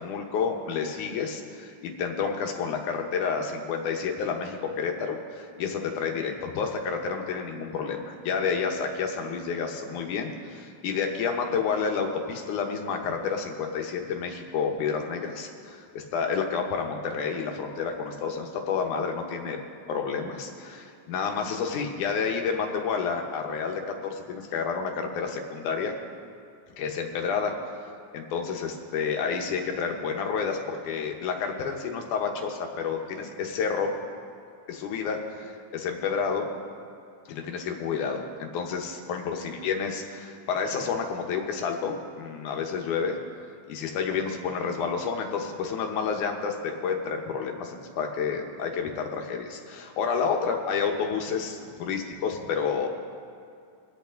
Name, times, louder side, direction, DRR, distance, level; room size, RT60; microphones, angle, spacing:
voice 1, 0.0-19.6 19.9-26.0 26.8-27.5 28.1-33.9 34.7-36.5 37.3-43.2 43.7-52.9, left 6 dB, 80° left, 3 dB, 2.6 m, -30 dB
23.5 x 8.1 x 3.8 m, 2.4 s
omnidirectional pair, 3.6 m